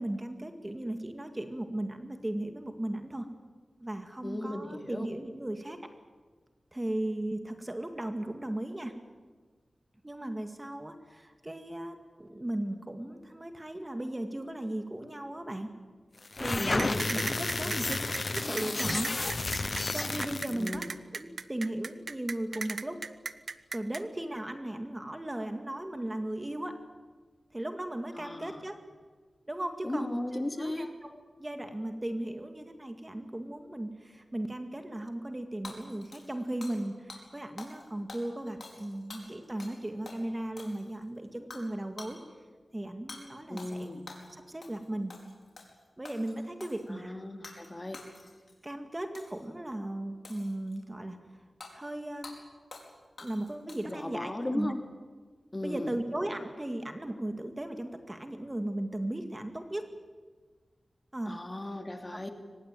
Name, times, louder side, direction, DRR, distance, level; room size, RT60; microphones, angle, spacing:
voice 1, 0.0-3.3 3.8-5.8 6.7-8.9 10.0-15.7 16.4-18.0 18.3-19.1 19.9-23.1 23.7-26.8 27.5-28.8 29.5-42.2 42.7-44.0 44.3-45.1 46.0-47.2 48.6-51.2 51.7-52.4 53.2-54.7 55.6-59.9 61.1-61.4, right 1 dB, 20° right, 6 dB, 2.1 m, -36 dB
voice 2, 4.2-5.1 16.6-17.3 17.6-17.7 20.5-20.9 28.2-28.6 29.8-30.9 43.5-44.0 46.9-48.0 53.8-54.8 55.5-55.9 61.3-62.3, left 1 dB, 25° left, 5 dB, 2.8 m, -36 dB
sound 1, 16.2-20.7, left 3 dB, 45° left, 0.8 m, -32 dB
sound 2, 16.8-24.0, right 4 dB, 70° right, 1.0 m, -36 dB
Hammer / Shatter, 35.6-36.8 37.1-37.2 37.6-37.8 38.1-39.8 40.1-40.2 40.6-41.0 41.5-41.7 42.0-42.2 43.1-43.2 43.6-44.3 44.6-44.8 45.1-45.7 46.0-46.8 47.4-47.7 47.9-48.5 49.1-49.5 50.2-50.8 51.6-51.7 52.2-52.4 52.7-52.9 53.2-54.0, left 3 dB, 60° left, 4.9 m, -48 dB
23.5 x 20.5 x 9.2 m, 1.4 s
wide cardioid pair, 70°, 0 cm